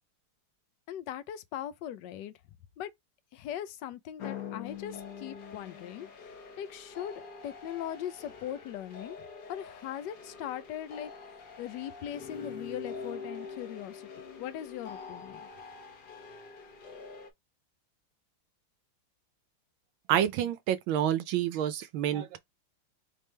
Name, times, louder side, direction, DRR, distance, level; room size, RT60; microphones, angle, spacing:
voice 1, 0.9-2.3 2.8-2.9 3.3-6.1 6.6-9.2 9.5-11.1 11.6-14.1 14.4-15.5, left 10 dB, 70° left, 1.1 m, -40 dB
sound 1, 4.2-17.3, left 5 dB, 55° left, 1.4 m, -45 dB
voice 2, 20.1-22.4, right 11 dB, 75° right, 1.3 m, -28 dB
4.4 x 3.4 x 3.2 m
omnidirectional pair, 2.3 m